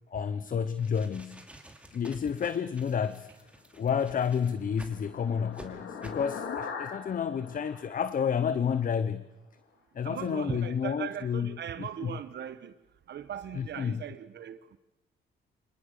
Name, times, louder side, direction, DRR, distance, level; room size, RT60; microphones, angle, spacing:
voice 1, 0.1-1.4 1.9-3.3 3.8-9.2 9.9-11.5 11.8-12.1 13.6-14.0, left 7 dB, 45° left, 0.8 m, -30 dB
sound 1, 0.6-5.0 5.5-5.7 6.0-6.3, right 1 dB, 5° right, 2.7 m, -51 dB
sound 2, 4.3-8.8, left 6 dB, 70° left, 2.8 m, -41 dB
voice 2, 10.0-12.7 13.1-14.6, right 9 dB, 60° right, 1.1 m, -39 dB
25.5 x 19.0 x 6.6 m
cardioid pair, 90°, 20 cm